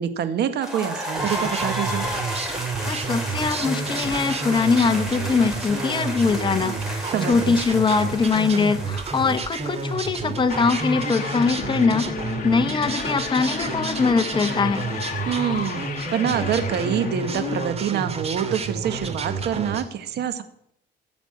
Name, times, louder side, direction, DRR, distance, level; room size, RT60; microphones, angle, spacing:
voice 1, 0.0-2.1 7.1-7.6 15.3-20.4, right 9 dB, 60° right, 10 dB, 1.8 m, -26 dB
sound 1, 0.6-10.4, equal, ahead, 5.2 m, -32 dB
sound 2, 1.2-19.8, right 4 dB, 35° right, 2.5 m, -30 dB
voice 2, 2.9-12.1 12.4-14.8, left 5 dB, 25° left, 8 dB, 1.4 m, -22 dB
sound 3, 10.5-17.7, left 6 dB, 45° left, 2.2 m, -32 dB
16.5 x 7.0 x 8.6 m, 0.74 s
cardioid pair, 110°, 19 cm